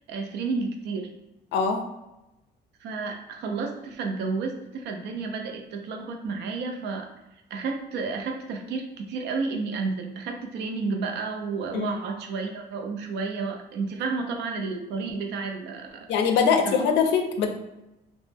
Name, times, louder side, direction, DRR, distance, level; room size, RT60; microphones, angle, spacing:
voice 1, 0.1-1.1 2.8-7.1 7.5-16.1 16.6-16.7, right 4 dB, 75° right, 3 dB, 0.5 m, -31 dB
voice 2, 1.5-1.9 11.7-11.9 16.1-17.5, left 6 dB, 85° left, 5 dB, 0.4 m, -22 dB
2.1 x 2.0 x 3.2 m, 0.94 s
cardioid pair, 170°, 18 cm